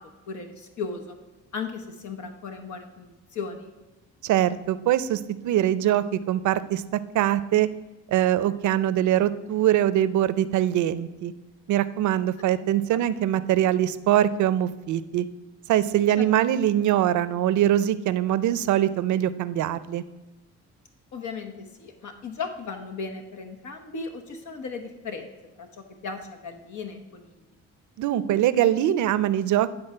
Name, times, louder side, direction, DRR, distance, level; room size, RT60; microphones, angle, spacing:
voice 1, 0.3-1.2 1.5-3.7 16.2-16.3 21.1-25.3 25.6-27.3, left 4 dB, 70° left, 5 dB, 1.0 m, -36 dB
voice 2, 4.2-7.7 8.1-11.3 11.7-15.3 15.7-20.0 28.0-29.7, right 12 dB, 75° right, 15 dB, 0.6 m, -23 dB
10.5 x 4.0 x 6.6 m, 1.1 s
cardioid pair, 90°, 30 cm